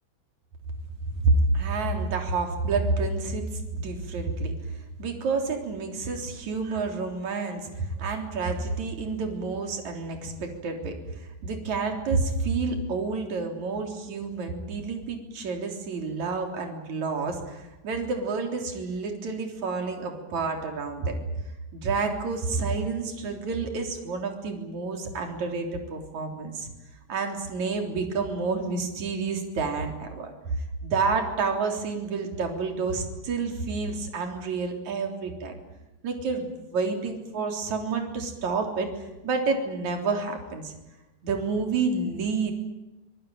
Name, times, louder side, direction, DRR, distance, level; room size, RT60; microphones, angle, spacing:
voice 1, 1.2-3.5 3.7-4.5 5.0-10.9 11.2-21.2 21.7-26.7 27.1-30.6 30.8-35.6 36.0-40.7 41.2-42.5, right 4 dB, 45° right, 4 dB, 4.6 m, -29 dB
25.5 x 19.0 x 9.0 m, 1.0 s
omnidirectional pair, 4.9 m